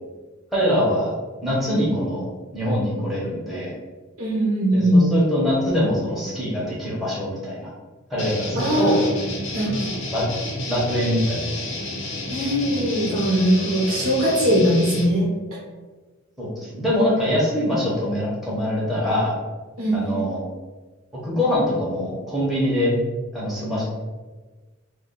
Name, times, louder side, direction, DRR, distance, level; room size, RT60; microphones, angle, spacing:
voice 1, 0.5-1.2 1.4-2.3 2.5-3.7 4.7-7.7 8.1-9.0 10.1-10.2 10.7-11.7 16.4-19.3 19.9-20.4 21.2-22.9 23.3-23.8, left 1 dB, ahead, -8 dB, 0.8 m, -23 dB
voice 2, 4.2-5.0 8.5-9.0 9.5-9.9 12.3-15.3 19.8-20.2, equal, 75° right, -4 dB, 1.0 m, -20 dB
sound 1, 8.2-15.1, left 2 dB, 60° left, 0.6 m, -30 dB
2.5 x 2.3 x 3.7 m, 1.3 s
head